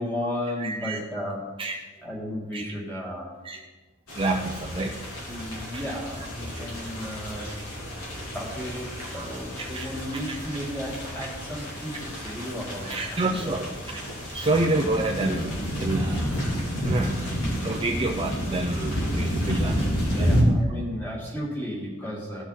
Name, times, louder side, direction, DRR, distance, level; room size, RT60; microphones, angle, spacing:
voice 1, 0.0-3.4 5.3-7.5 8.3-13.6 20.1-22.4, equal, 10° left, -3 dB, 2.5 m, -34 dB
voice 2, 0.6-1.0 1.6-1.7 2.5-2.6 3.4-3.6 4.1-5.0 5.7-5.8 9.1-9.3 9.7-9.9 10.3-10.4 12.8-14.0 14.3-16.4 16.8-17.1 17.6-20.3, right 2 dB, 25° right, 1 dB, 0.7 m, -28 dB
sound 1, 4.1-20.4, equal, 70° left, 3.6 m, -30 dB
16.0 x 6.1 x 4.2 m, 1.2 s
head